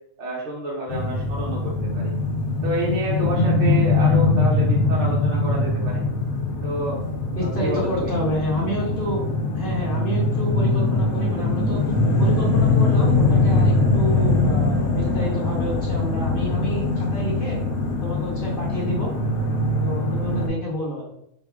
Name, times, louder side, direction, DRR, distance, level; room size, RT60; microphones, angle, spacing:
voice 1, 0.2-2.1 2.6-6.0 6.6-7.0 7.4-8.1, right 1 dB, 65° right, -4 dB, 1.0 m, -29 dB
sound 1, 0.9-20.5, left 2 dB, 85° left, 1.1 m, -22 dB
voice 2, 7.4-9.2 9.5-11.9 12.2-17.6 18.0-19.1 19.8-21.1, equal, 50° left, -3 dB, 0.7 m, -29 dB
3.6 x 2.2 x 2.3 m, 0.77 s
omnidirectional pair, 1.4 m